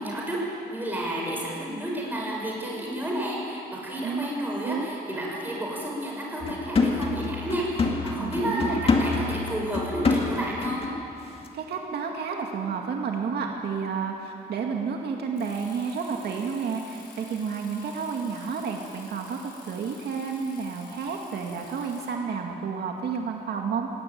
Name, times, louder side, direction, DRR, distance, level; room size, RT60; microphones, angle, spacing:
voice 1, 0.0-10.9, right 1 dB, 10° right, -3 dB, 5.9 m, -31 dB
sound 1, 6.4-11.0 11.3-11.5, left 3 dB, 35° left, 2.2 m, -26 dB
voice 2, 8.2-8.8 11.5-23.9, right 5 dB, 75° right, 1 dB, 2.0 m, -31 dB
Bicycle, 15.4-22.1, left 3 dB, 80° left, 6.6 m, -50 dB
21.0 x 17.0 x 9.2 m, 2.7 s
wide cardioid pair, 165°, 17 cm